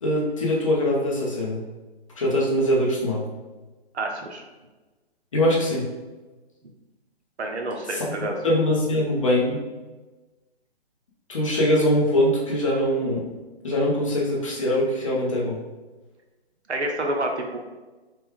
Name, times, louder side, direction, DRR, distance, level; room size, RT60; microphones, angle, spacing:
voice 1, 0.0-1.6 2.2-3.2 5.3-5.9 7.9-8.0 8.4-9.6 11.3-13.2 13.6-15.6, left 1 dB, 30° left, -4 dB, 0.8 m, -22 dB
voice 2, 3.9-4.4 7.4-8.4 16.7-17.6, right 1 dB, 90° right, 2 dB, 0.9 m, -28 dB
3.3 x 3.0 x 3.6 m, 1.2 s
hypercardioid pair, 165°, 33 cm